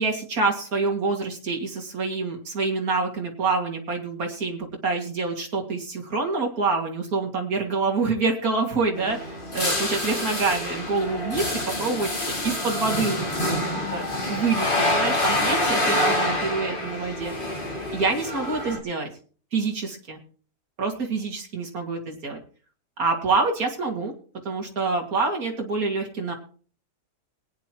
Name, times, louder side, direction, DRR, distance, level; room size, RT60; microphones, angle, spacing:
voice 1, 0.0-12.1 12.4-13.6 13.9-14.0 14.3-17.3 17.9-19.1 19.5-20.2 20.8-22.4 23.0-24.1 24.4-26.3, right 4 dB, 80° right, 2 dB, 2.8 m, -26 dB
sound 1, 8.9-18.8, left 1 dB, 35° left, 2.4 m, -27 dB
21.5 x 9.6 x 3.0 m, 0.42 s
omnidirectional pair, 1.5 m